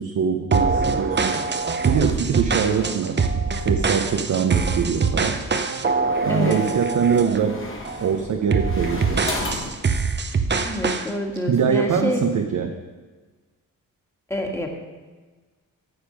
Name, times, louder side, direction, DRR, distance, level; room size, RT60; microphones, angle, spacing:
voice 1, 0.0-1.6 1.8-5.4 6.2-7.6 8.0-9.3 11.5-12.7, right 6 dB, 60° right, 4 dB, 0.8 m, -23 dB
sound 1, 0.5-7.5 7.8-8.1 8.5-11.1, right 4 dB, 30° right, 0.8 m, -23 dB
sound 2, 4.5-5.1 5.8-9.8, left 2 dB, 35° left, 1.9 m, -34 dB
voice 2, 6.3-6.6 10.6-12.2 14.3-14.7, left 1 dB, 10° left, 1 dB, 1.7 m, -27 dB
9.7 x 7.2 x 5.2 m, 1.3 s
cardioid pair, 80°, 34 cm